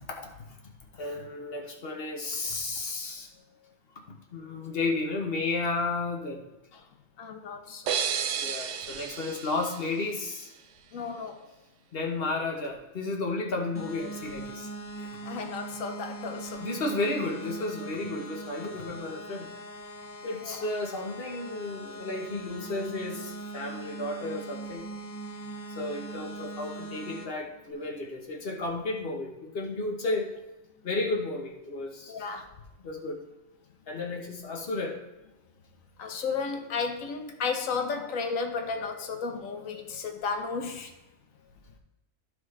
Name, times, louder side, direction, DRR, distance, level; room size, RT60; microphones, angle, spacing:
voice 1, 0.9-3.3 4.3-6.4 8.4-10.5 11.9-14.7 15.0-15.2 16.6-19.5 20.2-24.8 25.8-30.3 30.8-32.3 32.8-33.2 33.9-35.0, left 2 dB, 50° left, 1.2 m, -33 dB
voice 2, 7.2-8.0 10.9-11.5 15.3-16.7 20.4-20.7 32.1-32.5 36.0-40.9, left 5 dB, 80° left, 1.2 m, -33 dB
sound 1, 7.9-10.6, right 8 dB, 70° right, 0.9 m, -33 dB
sound 2, 13.7-27.3, right 2 dB, 10° left, 0.8 m, -41 dB
13.0 x 4.8 x 3.2 m
omnidirectional pair, 1.4 m